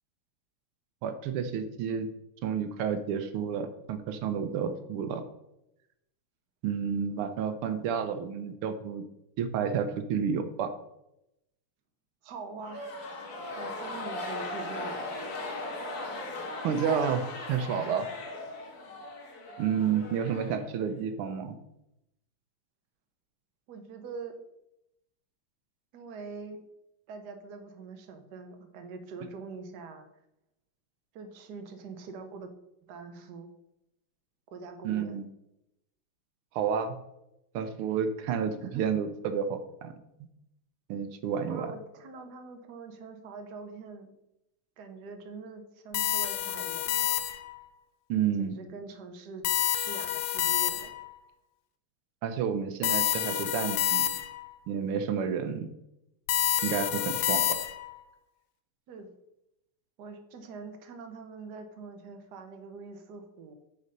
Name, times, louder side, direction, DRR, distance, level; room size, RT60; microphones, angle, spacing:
voice 1, 1.0-2.1 2.4-5.2 6.6-9.0 9.4-10.7 16.6-18.1 19.6-21.5 34.8-35.2 36.5-37.0 37.5-39.9 40.9-41.7 48.1-48.5 52.2-54.1 54.7-55.7 56.6-57.4, right 7 dB, 85° right, 9 dB, 1.6 m, -30 dB
voice 2, 12.2-13.0 13.5-15.2 23.7-24.3 25.9-26.6 27.1-30.1 31.1-32.5 32.9-33.5 34.5-35.2 38.6-39.0 41.4-44.1 44.8-47.2 48.4-49.5 49.8-51.0 58.9-59.1 60.0-63.5, right 4 dB, 55° right, 6 dB, 1.4 m, -44 dB
sound 1, 12.6-21.1, left 2 dB, 50° left, 1.7 m, -38 dB
sound 2, 45.9-47.6 49.4-51.1 52.8-54.5 56.3-58.0, left 12 dB, 85° left, 1.6 m, -28 dB
9.6 x 4.0 x 5.2 m, 0.84 s
omnidirectional pair, 2.4 m